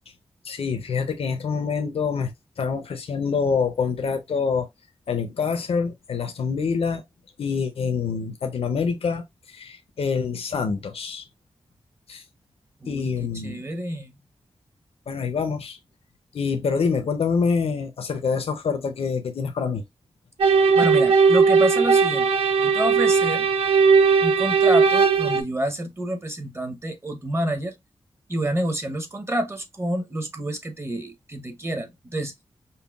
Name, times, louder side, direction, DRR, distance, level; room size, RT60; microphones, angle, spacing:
voice 1, 0.4-4.7 5.1-7.0 7.4-11.2 12.1-12.2 12.9-13.6 15.1-15.8 16.3-19.8, left 5 dB, 80° left, 0.6 m, -26 dB
voice 2, 12.8-14.2 20.7-22.3 22.6-23.5 24.2-27.7 28.3-32.3, right 1 dB, 25° right, 0.9 m, -28 dB
sound 1, 20.4-25.4, right 5 dB, 80° right, 0.6 m, -18 dB
5.4 x 2.2 x 2.3 m
wide cardioid pair, 105°, 10 cm